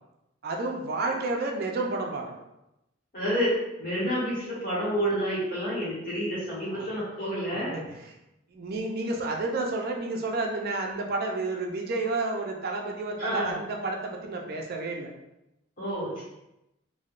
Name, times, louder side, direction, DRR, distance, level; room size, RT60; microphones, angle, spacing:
voice 1, 0.4-2.4 6.7-6.9 7.7-8.2 8.5-15.1, right 2 dB, 50° right, 1 dB, 0.4 m, -30 dB
voice 2, 3.1-7.7 13.2-13.6 15.8-16.2, equal, 45° left, -8 dB, 1.0 m, -29 dB
3.3 x 2.1 x 2.4 m, 0.90 s
head